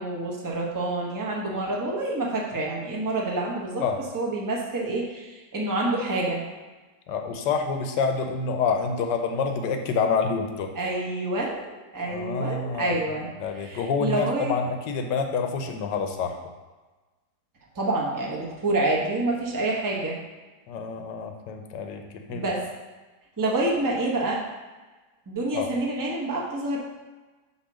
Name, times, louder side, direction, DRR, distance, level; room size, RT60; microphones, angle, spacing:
voice 1, 0.0-3.8 4.1-6.4 10.7-13.3 13.6-14.5 17.7-20.1 22.3-22.7 23.4-24.4 25.3-26.8, right 2 dB, 15° right, -3 dB, 0.9 m, -27 dB
voice 2, 7.1-10.7 12.1-16.4 20.7-22.4 25.5-25.7, left 5 dB, 80° left, 5 dB, 1.4 m, -27 dB
8.4 x 3.0 x 6.1 m, 1.2 s
omnidirectional pair, 1.9 m